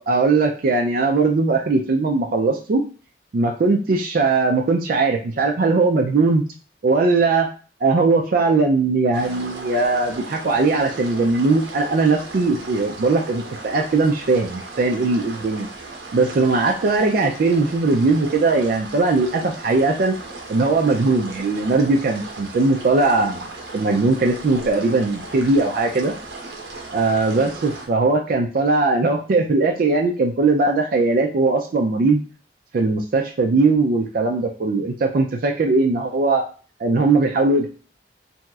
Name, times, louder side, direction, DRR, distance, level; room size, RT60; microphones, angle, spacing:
voice 1, 0.0-2.8 3.3-6.4 6.8-7.5 7.8-15.7 16.1-20.2 20.5-23.5 23.7-26.1 26.9-32.2 32.7-36.4 36.8-37.7, right 3 dB, 55° right, 2 dB, 0.4 m, -19 dB
sound 1, 9.1-27.9, right 3 dB, 80° right, 0.7 m, -37 dB
2.9 x 2.8 x 2.3 m, 0.38 s
head